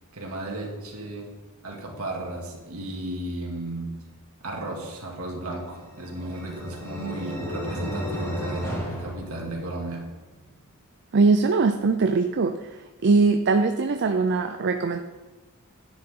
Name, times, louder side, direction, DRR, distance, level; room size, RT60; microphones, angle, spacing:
voice 1, 0.1-1.3 1.6-4.0 4.4-10.1, right 2 dB, 70° right, -1 dB, 2.4 m, -34 dB
sound 1, 5.6-10.1, equal, 15° left, 2.0 m, -34 dB
voice 2, 11.1-12.7 13.0-15.0, right 4 dB, 50° right, 7 dB, 0.5 m, -21 dB
11.0 x 9.8 x 3.8 m, 1.2 s
head